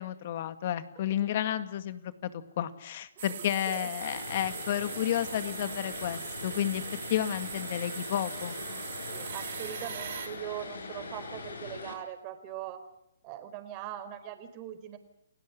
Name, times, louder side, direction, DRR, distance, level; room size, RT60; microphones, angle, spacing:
voice 1, 0.0-2.3 2.6-6.8 7.1-8.6, left 11 dB, 50° left, 11 dB, 2.2 m, -31 dB
voice 2, 1.0-1.3 3.2-3.9 9.1-12.8 13.2-15.0, right 11 dB, 30° right, 8 dB, 4.6 m, -41 dB
sound 1, 3.2-10.3, right 8 dB, 55° right, 7.8 m, -41 dB
Vehicle, 4.0-11.9, left 3 dB, 80° left, 7.1 m, -42 dB
30.0 x 18.5 x 9.6 m, 0.77 s
hypercardioid pair, 140°, 0 cm